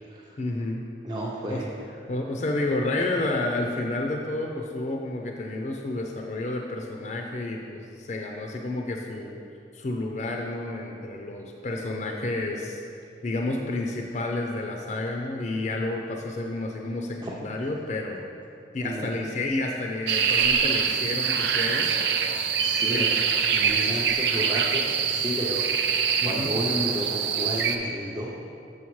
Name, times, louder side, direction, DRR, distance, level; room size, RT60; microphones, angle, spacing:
voice 1, 0.4-0.8 1.5-1.6 2.1-9.4 9.7-12.8 13.2-18.3 18.7-21.9 22.9-23.3 26.2-26.5, left 2 dB, 40° left, 1 dB, 0.4 m, -30 dB
voice 2, 1.0-1.7 17.2-17.3 18.8-19.1 22.6-23.1 23.5-28.3, equal, 25° right, -6 dB, 0.5 m, -32 dB
sound 1, 20.1-27.8, right 6 dB, 80° right, 0.5 m, -24 dB
7.1 x 6.6 x 3.1 m, 2.5 s
head